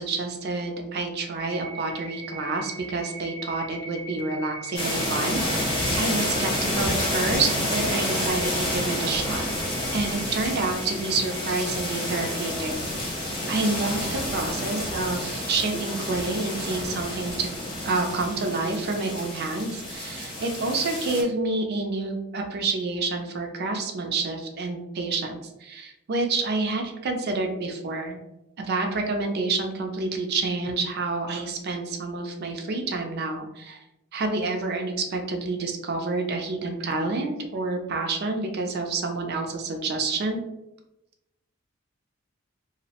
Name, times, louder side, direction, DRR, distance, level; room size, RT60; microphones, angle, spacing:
voice 1, 0.0-9.4 9.9-12.7 13.5-17.5 17.8-28.2 28.6-33.8 34.1-40.4, right 3 dB, 50° right, 4 dB, 0.4 m, -28 dB
sound 1, 1.4-12.3, right 1 dB, 85° left, 0.7 m, -41 dB
sound 2, 4.7-21.2, left 1 dB, 25° left, 0.7 m, -29 dB
2.6 x 2.0 x 2.8 m, 0.90 s
head